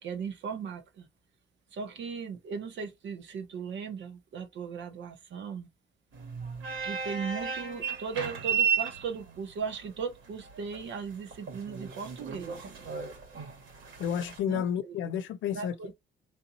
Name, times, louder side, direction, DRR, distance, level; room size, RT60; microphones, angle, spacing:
voice 1, 0.0-1.1 1.7-5.7 6.8-12.7 14.5-15.0 15.5-15.9, right 6 dB, 70° right, 1.4 m, -37 dB
sound 1, 6.1-14.4, right 7 dB, 85° right, 2.1 m, -34 dB
voice 2, 14.0-15.9, left 8 dB, 85° left, 0.7 m, -31 dB
3.3 x 2.9 x 4.0 m
cardioid pair, 115°, 20 cm